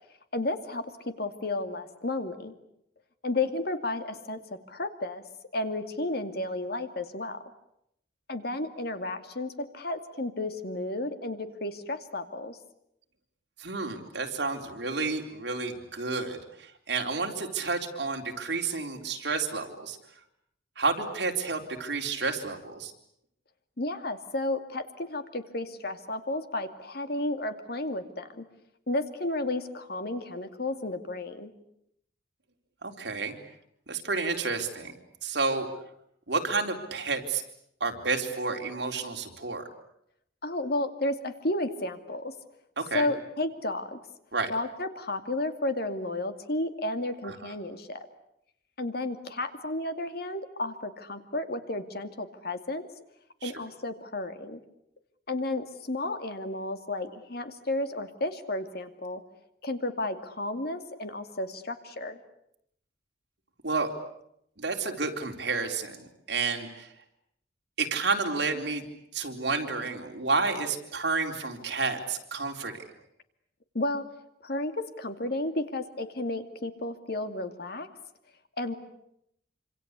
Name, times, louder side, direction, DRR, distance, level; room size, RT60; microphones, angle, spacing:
voice 1, 0.3-0.9 1.2-2.5 3.2-5.2 5.5-7.4 8.3-12.6 23.8-28.4 28.9-31.5 40.4-42.3 42.9-44.0 44.5-48.0 48.8-52.8 53.4-54.6 55.3-59.2 59.6-62.2 73.7-74.0 74.4-77.9 78.6-78.8, left 2 dB, 55° left, 8 dB, 2.5 m, -32 dB
voice 2, 13.6-20.0 20.8-22.9 32.8-33.3 33.9-34.9 35.2-35.7 36.3-37.4 37.8-39.7 42.8-43.1 44.3-44.5 47.2-47.5 53.4-53.6 63.6-63.9 64.6-66.9 67.8-68.8 69.1-72.8, right 4 dB, 65° right, 3 dB, 4.0 m, -30 dB
27.0 x 26.5 x 8.3 m, 0.75 s
head